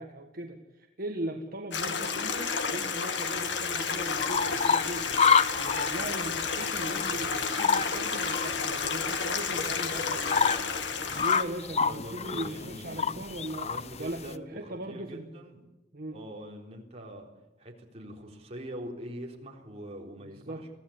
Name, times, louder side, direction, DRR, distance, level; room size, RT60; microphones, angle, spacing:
voice 1, 0.0-10.4 11.0-13.7 14.0-15.4 15.9-16.2 20.3-20.7, right 1 dB, 55° right, 3 dB, 1.7 m, -39 dB
Stream, 1.7-11.4, left 5 dB, 80° left, 2.0 m, -31 dB
sound 1, 3.9-14.3, left 6 dB, 35° left, 0.7 m, -29 dB
voice 2, 9.8-10.9 11.9-13.2 13.6-15.6 16.1-17.3 17.6-20.6, equal, 35° right, 0 dB, 3.8 m, -43 dB
23.5 x 16.0 x 8.7 m, 1.0 s
head